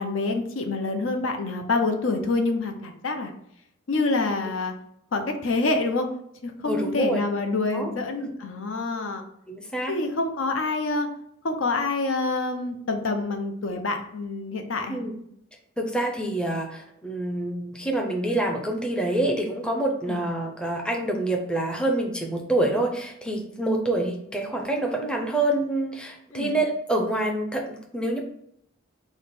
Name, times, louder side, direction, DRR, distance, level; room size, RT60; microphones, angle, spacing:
voice 1, 0.0-3.3 3.9-4.7 5.1-6.1 6.4-9.2 9.9-11.1 11.4-15.0 20.1-20.2 26.3-26.5, left 3 dB, 80° left, 5 dB, 0.6 m, -26 dB
voice 2, 6.6-7.2 7.7-7.9 8.2-8.3 9.5-10.0 14.9-15.2 15.8-28.2, right 1 dB, 5° left, 1 dB, 0.5 m, -27 dB
5.0 x 2.1 x 4.1 m, 0.71 s
head